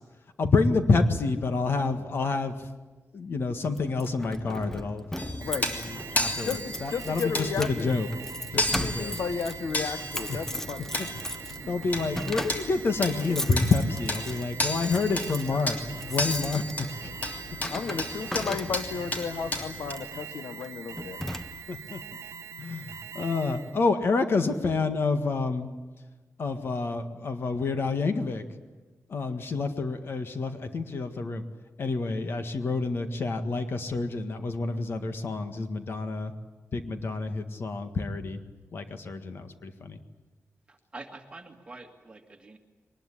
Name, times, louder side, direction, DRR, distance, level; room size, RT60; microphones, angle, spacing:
voice 1, 0.4-2.6 3.1-5.0 5.4-8.1 8.5-9.1 10.3-10.4 11.0-11.1 11.7-16.6 17.0-17.1 17.7-17.8 21.7-22.0 22.6-25.7 26.4-28.4 29.1-31.4 31.8-36.3 36.7-38.4 38.7-40.0, left 3 dB, 50° left, 8 dB, 1.7 m, -28 dB
Keys jangling, 3.8-19.1 19.9-20.1 20.6-20.7 21.0-21.9, left 1 dB, 10° left, 0.8 m, -38 dB
sound 1, 5.2-19.9, left 1 dB, 35° left, 2.9 m, -34 dB
voice 2, 5.4-5.7 6.4-7.9 8.5-10.9 17.7-21.2, left 5 dB, 80° left, 10 dB, 1.3 m, -33 dB
Alarm, 5.4-23.8, right 6 dB, 75° right, 1.1 m, -43 dB
voice 3, 11.4-11.8 40.7-42.6, right 3 dB, 20° right, 4 dB, 2.1 m, -46 dB
22.5 x 20.0 x 10.0 m, 1.2 s
wide cardioid pair, 170°, 5 cm